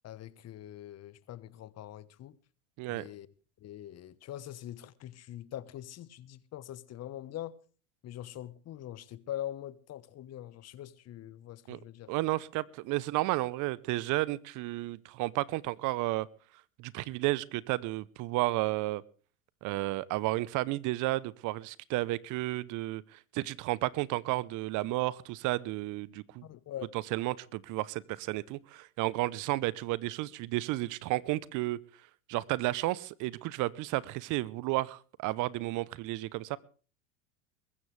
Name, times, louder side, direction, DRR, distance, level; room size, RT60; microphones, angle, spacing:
voice 1, 0.0-2.4 2.9-3.3 3.6-7.6 8.0-12.1 26.4-26.9, left 12 dB, 40° left, 1.2 m, -43 dB
voice 2, 2.8-3.1 11.7-11.8 12.1-16.3 16.8-19.0 19.6-26.5 27.1-31.8 32.3-36.6, right 19 dB, 50° right, 0.8 m, -32 dB
22.0 x 14.0 x 3.3 m
hypercardioid pair, 90°, 39 cm